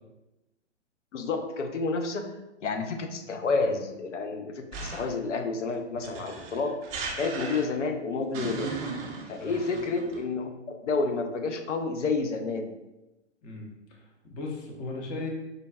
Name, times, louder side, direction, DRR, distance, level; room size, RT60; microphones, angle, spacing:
voice 1, 1.1-2.3 2.6-6.8 7.2-8.7 9.3-12.7, left 3 dB, 80° left, 5 dB, 0.6 m, -30 dB
sound 1, 4.7-5.2 6.0-7.9 8.3-10.2, right 4 dB, 25° right, 0.6 m, -36 dB
voice 2, 13.4-15.3, left 3 dB, 25° left, 0 dB, 0.6 m, -37 dB
5.1 x 2.2 x 2.3 m, 1.0 s
figure-of-eight pair, 115°, 35 cm